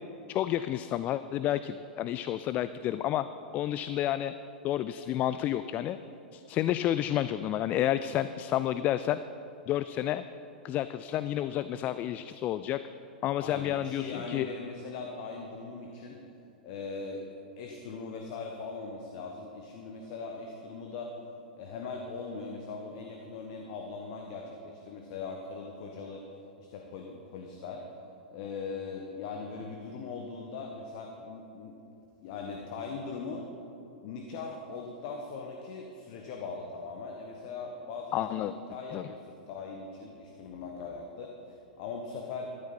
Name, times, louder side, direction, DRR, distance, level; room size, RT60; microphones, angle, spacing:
voice 1, 0.3-3.3 3.5-4.3 4.6-6.0 6.3-9.2 9.7-10.2 10.6-12.8 13.2-14.5 38.1-38.5 38.9-39.1, left 12 dB, 30° left, 13 dB, 0.3 m, -30 dB
voice 2, 13.4-16.2 16.6-17.2 17.6-21.3 21.5-26.3 26.6-27.8 28.3-31.8 32.2-33.5 34.0-42.5, left 4 dB, 50° left, 2 dB, 1.2 m, -40 dB
14.0 x 12.0 x 4.3 m, 2.8 s
figure-of-eight pair, 95°, 5 cm